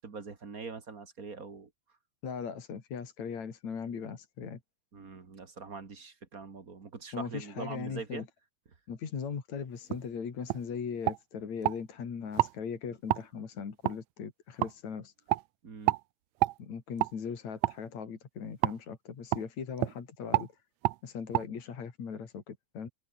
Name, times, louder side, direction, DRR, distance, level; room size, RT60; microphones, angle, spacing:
voice 1, 0.0-1.7 4.9-8.3 15.6-16.0, right 4 dB, 35° right, 2.0 m, -43 dB
voice 2, 2.2-4.6 7.1-8.3 8.9-15.1 16.6-20.5 21.0-22.9, left 6 dB, 70° left, 4.4 m, -39 dB
sound 1, 9.9-10.0 10.5-10.6 11.0-11.8 12.3-12.5 13.1-13.2 13.8-14.0 14.6-14.7 15.3-15.4 15.9-16.0 16.4-16.6 17.0-17.1 17.6-17.8 18.6-18.8 19.3-19.5 19.8-20.0 20.3-20.5 20.8-21.0 21.3-21.4, right 17 dB, 80° right, 1.8 m, -28 dB
omnidirectional pair, 3.3 m